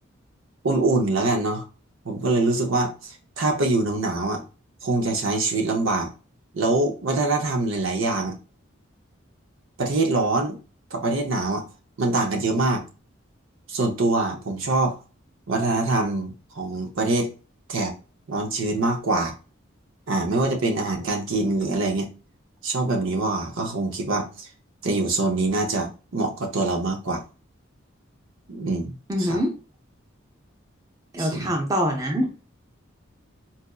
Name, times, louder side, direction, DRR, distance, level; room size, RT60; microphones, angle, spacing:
voice 1, 0.6-1.6 2.0-4.4 4.8-6.1 6.5-8.4 9.8-10.6 10.9-11.7 12.0-12.8 13.7-15.0 15.5-17.3 17.7-17.9 18.3-19.3 20.1-22.1 22.6-24.5 24.8-27.2 28.5-28.9 29.2-29.4 31.2-31.5, right 2 dB, 75° right, 0.7 m, -24 dB
voice 2, 29.1-29.6 31.1-32.3, equal, 15° right, 0.6 m, -24 dB
4.1 x 2.4 x 2.3 m
head